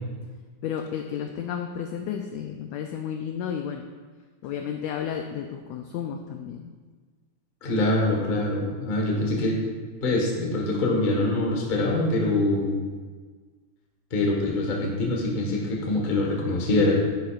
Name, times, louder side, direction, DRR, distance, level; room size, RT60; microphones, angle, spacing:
voice 1, 0.6-3.9 4.4-6.7, left 8 dB, 90° left, 5 dB, 1.5 m, -32 dB
voice 2, 7.6-9.6 10.0-12.8 14.1-16.9, left 2 dB, 55° left, -1 dB, 0.5 m, -24 dB
10.0 x 9.6 x 2.5 m, 1.5 s
omnidirectional pair, 3.6 m